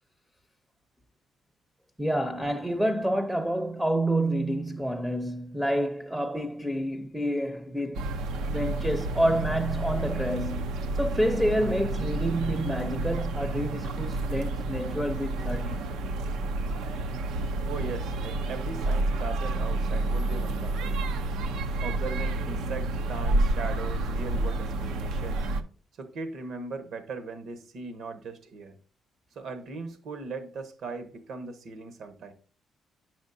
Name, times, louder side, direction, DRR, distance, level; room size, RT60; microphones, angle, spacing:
voice 1, 2.0-8.1 8.5-15.9, right 1 dB, 5° right, 0.6 m, -28 dB
sound 1, 7.9-25.6, right 2 dB, 90° right, 0.6 m, -30 dB
voice 2, 17.7-21.0 21.8-25.5 26.0-28.8 29.3-32.3, right 4 dB, 70° right, 1.1 m, -39 dB
9.2 x 6.2 x 2.6 m
cardioid pair, 90°, 0 cm